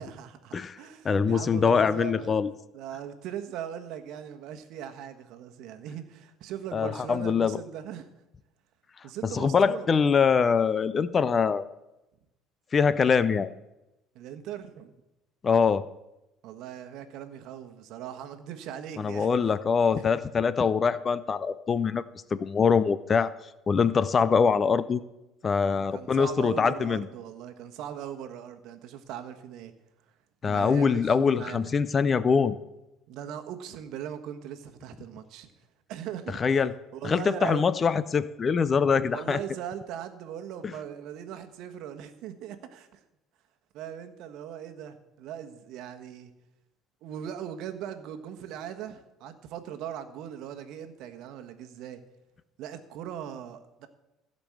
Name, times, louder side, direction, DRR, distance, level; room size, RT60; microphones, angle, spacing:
voice 1, 0.0-2.4 2.7-8.1 9.0-10.0 14.1-14.9 16.4-19.5 20.0-20.3 25.6-29.7 30.1-30.2 30.4-31.7 33.1-37.7 39.1-43.0 43.7-46.3 47.0-52.0 52.6-53.9, right 9 dB, 65° right, 8 dB, 1.2 m, -40 dB
voice 2, 1.0-2.5 6.7-7.6 9.3-11.7 12.7-13.5 15.4-15.8 19.0-22.0 22.3-23.3 23.7-25.0 25.4-27.0 30.4-32.5 36.4-36.7 37.0-39.4, left 6 dB, 30° left, 16 dB, 0.5 m, -23 dB
15.0 x 5.3 x 7.5 m, 0.95 s
cardioid pair, 125°, 0 cm